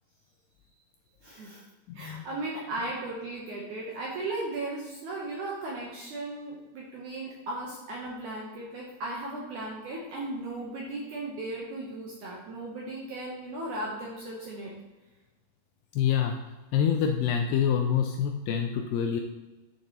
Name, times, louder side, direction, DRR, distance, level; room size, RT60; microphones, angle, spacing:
voice 1, 1.2-1.7 1.9-14.7, right 2 dB, 70° right, -3 dB, 2.0 m, -36 dB
voice 2, 1.9-2.3 15.9-16.4 16.7-19.2, left 8 dB, 90° left, 4 dB, 2.0 m, -26 dB
9.9 x 6.5 x 2.9 m, 1.2 s
omnidirectional pair, 4.7 m